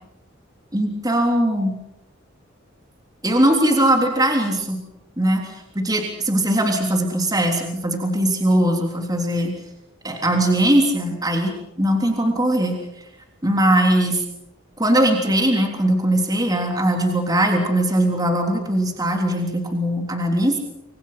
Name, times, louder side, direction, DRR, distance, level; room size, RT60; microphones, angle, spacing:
voice 1, 0.7-1.7 3.2-4.8 5.2-9.5 10.0-11.5 11.8-12.8 13.4-14.2 14.8-20.6, right 1 dB, 20° right, 2 dB, 3.5 m, -20 dB
28.0 x 26.0 x 5.8 m, 0.86 s
head